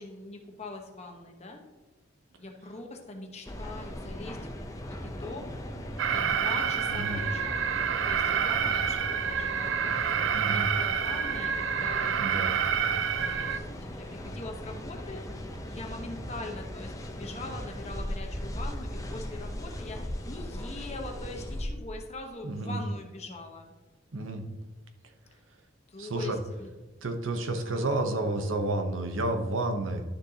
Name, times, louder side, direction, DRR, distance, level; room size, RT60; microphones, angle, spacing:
voice 1, 0.0-1.6 2.4-4.4 5.0-5.4 5.9-7.6 8.1-12.2 13.2-15.2 15.7-20.0 20.2-23.7 25.9-26.7 27.6-28.2, left 2 dB, 35° left, 2 dB, 1.1 m, -42 dB
sound 1, 3.4-21.7, equal, 15° left, 0.6 m, -38 dB
Alarm, 6.0-13.6, right 7 dB, 70° right, 0.4 m, -28 dB
voice 2, 6.9-7.2 10.3-10.7 12.2-12.6 22.4-22.8 24.1-24.5 26.0-26.4 27.0-30.0, right 2 dB, 90° right, 5 dB, 0.9 m, -30 dB
11.5 x 6.7 x 2.9 m, 1.2 s
head